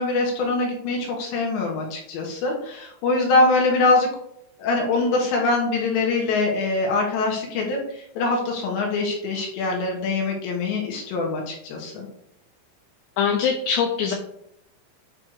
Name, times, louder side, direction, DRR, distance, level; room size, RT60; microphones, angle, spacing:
voice 1, 0.0-4.1 4.6-12.1, left 3 dB, 65° left, 0 dB, 3.3 m, -23 dB
voice 2, 13.2-14.1, left 7 dB, 90° left, 1 dB, 2.4 m, -22 dB
8.9 x 3.3 x 6.3 m, 0.74 s
omnidirectional pair, 6.0 m